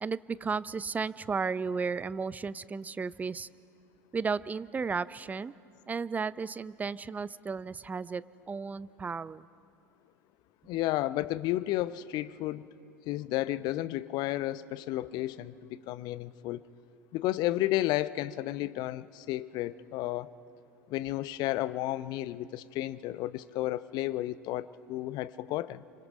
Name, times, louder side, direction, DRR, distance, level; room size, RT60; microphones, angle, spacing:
voice 1, 0.0-3.5 4.1-5.5 5.9-9.5, right 5 dB, 15° right, 18 dB, 0.5 m, -34 dB
voice 2, 10.7-12.7 13.1-16.6 17.1-20.3 20.9-25.8, left 15 dB, 45° left, 16 dB, 0.7 m, -32 dB
27.0 x 26.0 x 5.3 m, 2.5 s
figure-of-eight pair, 75°, 9 cm